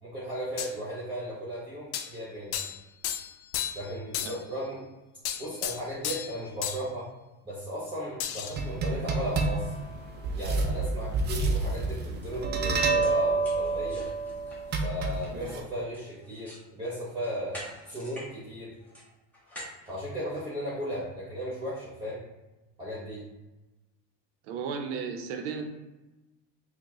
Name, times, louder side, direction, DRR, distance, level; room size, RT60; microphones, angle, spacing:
voice 1, 0.0-2.6 3.7-4.8 5.4-7.1 7.4-9.8 10.3-14.1 14.8-18.7 19.9-22.2 22.8-23.2, equal, 15° right, -9 dB, 1.2 m, -36 dB
sound 1, 0.6-0.7 1.9-2.1 2.5-2.8 3.0-3.9 4.1-4.4 5.2-6.4 6.6-6.8 8.2-8.6, left 10 dB, 65° left, 0.5 m, -33 dB
sound 2, 8.6-15.6, right 3 dB, 30° right, 0.5 m, -28 dB
sound 3, 11.6-11.8 12.2-12.3 12.8-16.7 17.0-18.3 18.6-20.7, equal, 5° left, 1.3 m, -47 dB
voice 2, 24.4-25.7, right 6 dB, 75° right, 5 dB, 0.7 m, -34 dB
4.5 x 2.2 x 2.9 m, 1.1 s
supercardioid pair, 120°, 36 cm